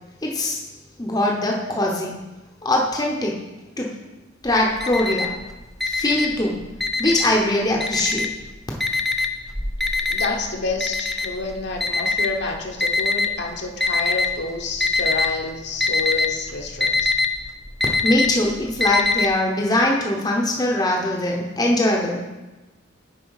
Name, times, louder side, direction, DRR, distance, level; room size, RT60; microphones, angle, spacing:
voice 1, 0.2-0.6 1.0-2.1 2.6-3.4 3.8-3.9 4.4-5.3 5.9-6.6 7.0-8.3 18.0-22.2, left 1 dB, 20° left, -1 dB, 0.8 m, -21 dB
Alarm, 4.5-5.4 5.8-7.4 7.8-8.5 8.8-13.3 13.8-14.4 14.7-15.3 15.6-19.3, left 3 dB, ahead, 0.4 m, -22 dB
voice 2, 10.1-17.1, left 3 dB, 60° left, 1 dB, 1.0 m, -29 dB
7.0 x 4.8 x 4.8 m, 1.1 s
head